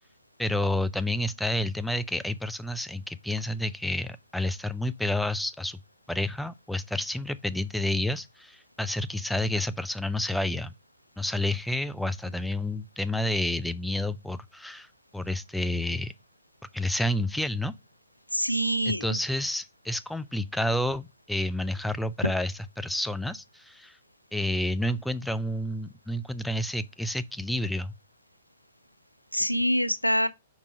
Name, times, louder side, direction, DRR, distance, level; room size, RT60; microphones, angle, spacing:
voice 1, 0.4-5.8 6.1-10.7 11.2-14.9 15.1-16.1 16.7-17.7 18.9-24.0 24.3-27.9, left 1 dB, ahead, 0.4 m, -29 dB
voice 2, 18.3-19.2 29.3-30.3, equal, 90° left, 0.5 m, -25 dB
5.1 x 4.8 x 5.1 m
figure-of-eight pair, 115°, 0 cm